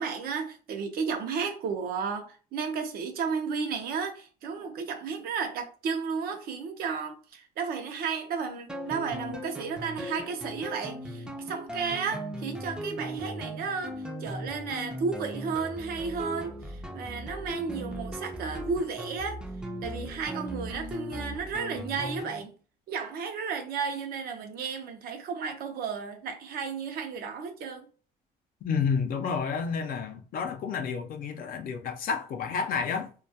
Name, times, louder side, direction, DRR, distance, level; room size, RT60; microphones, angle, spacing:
voice 1, 0.0-19.4 19.8-22.5 22.9-27.9, right 5 dB, 65° right, 0.6 m, -33 dB
sound 1, 8.7-22.4, equal, 5° right, 0.4 m, -38 dB
voice 2, 28.6-33.1, left 6 dB, 60° left, 0.5 m, -30 dB
2.2 x 2.2 x 2.7 m
cardioid pair, 110°, 17 cm